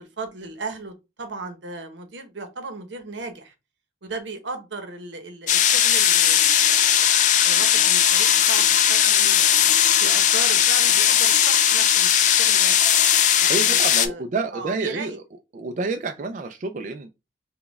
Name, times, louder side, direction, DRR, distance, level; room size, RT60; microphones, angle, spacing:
voice 1, 0.0-3.5 4.0-7.1 7.4-9.7 10.0-12.8 13.4-14.2 14.5-15.2, right 3 dB, 85° right, 0.8 m, -36 dB
sound 1, 5.5-14.1, left 9 dB, 40° left, 0.3 m, -18 dB
voice 2, 13.5-15.1 15.5-17.1, right 3 dB, 40° right, 0.3 m, -28 dB
4.1 x 2.2 x 3.4 m
head